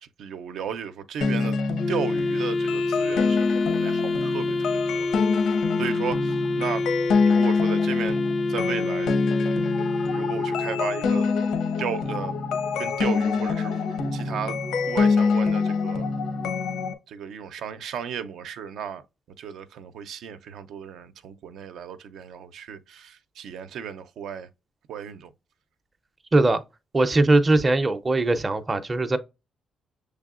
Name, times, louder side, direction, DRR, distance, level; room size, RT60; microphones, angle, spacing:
voice 1, 0.0-1.6 1.9-5.2 5.8-6.9 7.2-8.2 8.5-9.5 10.1-11.3 11.8-12.4 12.8-14.6 14.9-16.1 17.1-19.0 19.4-24.5 24.9-25.3, right 8 dB, 75° right, 0.5 m, -35 dB
sound 1, 1.2-16.9, left 4 dB, 85° left, 0.9 m, -25 dB
Wind instrument woodwind instrument, 1.8-11.0, left 2 dB, 40° left, 0.3 m, -27 dB
voice 2, 26.9-29.2, right 2 dB, 20° right, 0.5 m, -20 dB
6.6 x 3.3 x 2.4 m
cardioid pair, 135°, 0 cm